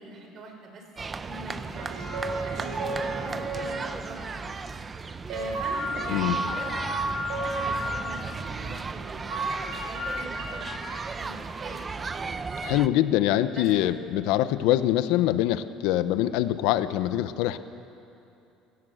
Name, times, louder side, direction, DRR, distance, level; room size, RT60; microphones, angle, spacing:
voice 1, 0.0-2.1 2.4-4.5 5.3-12.4 13.5-14.0, right 2 dB, 40° right, 3 dB, 4.8 m, -43 dB
sound 1, 1.0-12.9, right 4 dB, 20° right, 0.8 m, -35 dB
sound 2, 1.7-3.9 5.3-8.0 9.3-10.8, right 1 dB, 80° right, 6.5 m, -32 dB
voice 2, 12.6-17.6, left 13 dB, 80° left, 12 dB, 0.9 m, -24 dB
30.0 x 17.5 x 7.9 m, 2.7 s
cardioid pair, 135°, 0 cm